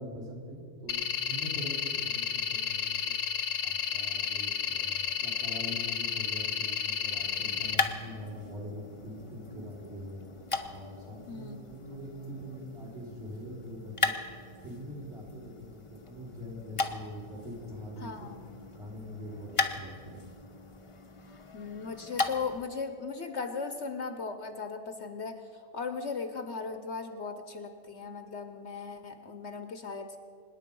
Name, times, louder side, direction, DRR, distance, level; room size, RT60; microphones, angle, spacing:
voice 1, 0.0-3.2 3.6-10.2 10.7-14.2 14.6-18.3 18.7-20.2, equal, 45° right, -2 dB, 4.2 m, -43 dB
sound 1, 0.9-7.7, left 8 dB, 80° left, 1.2 m, -32 dB
sound 2, 7.1-22.7, left 4 dB, 25° left, 0.8 m, -38 dB
voice 2, 11.3-11.6 18.0-18.6 21.5-25.4 25.7-30.2, left 5 dB, 55° left, 8 dB, 1.1 m, -37 dB
25.5 x 10.0 x 5.4 m, 2.5 s
omnidirectional pair, 1.5 m